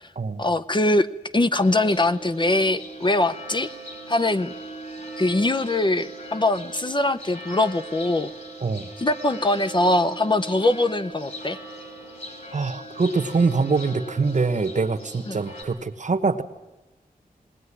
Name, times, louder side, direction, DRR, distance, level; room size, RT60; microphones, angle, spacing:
voice 1, 0.4-1.1 1.3-3.7 4.1-4.5 5.2-8.3 9.0-11.6 15.3-15.4, left 2 dB, 30° left, 11 dB, 0.7 m, -22 dB
sound 1, 1.6-15.6, right 1 dB, 50° left, 5.8 m, -39 dB
voice 2, 12.5-16.4, right 4 dB, 50° right, 11 dB, 1.2 m, -24 dB
19.5 x 19.0 x 9.9 m, 1.1 s
wide cardioid pair, 100°, 16 cm